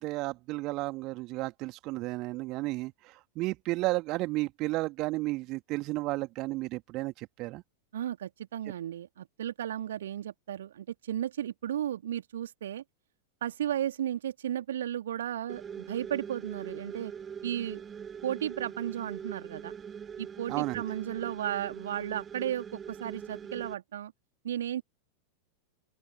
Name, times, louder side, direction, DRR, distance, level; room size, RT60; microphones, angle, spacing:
voice 1, 0.0-7.6 20.5-20.8, right 20 dB, 40° right, 2.4 m, -33 dB
voice 2, 7.9-12.8 13.4-17.1 17.4-17.8 18.2-19.7 20.2-24.1 24.4-24.8, right 11 dB, 60° right, 2.0 m, -34 dB
sound 1, 15.5-23.7, right 7 dB, 20° right, 2.7 m, -42 dB
open air
figure-of-eight pair, 90°, 0 cm